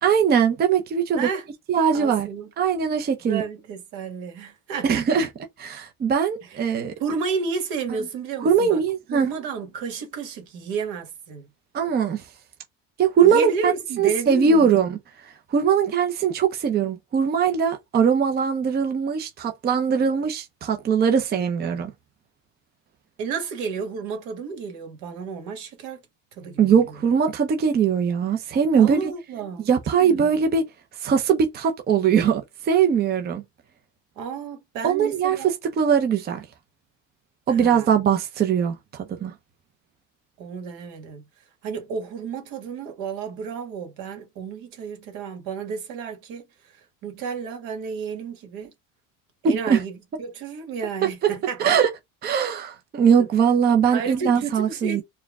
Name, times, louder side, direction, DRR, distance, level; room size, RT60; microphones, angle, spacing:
voice 1, 0.0-1.3 1.7-2.3 2.6-3.4 4.8-5.3 5.6-6.9 8.4-9.3 11.7-12.2 13.0-13.7 14.0-21.9 26.6-29.1 29.7-30.6 31.0-33.4 34.8-35.4 35.8-36.5 37.5-39.3 49.4-49.8 51.6-51.9 52.2-55.0, right 7 dB, 30° right, 0.6 m, -21 dB
voice 2, 1.2-1.5 1.9-2.5 3.2-5.3 7.0-8.8 9.1-11.5 13.2-14.7 23.2-26.0 26.4-27.0 28.8-29.7 30.0-30.4 34.2-35.5 37.5-38.0 40.4-41.2 41.6-46.5 47.0-48.7 49.4-51.8 53.2-53.3 53.9-55.0, right 5 dB, 70° right, 1.6 m, -32 dB
4.4 x 2.2 x 3.5 m
cardioid pair, 125°, 34 cm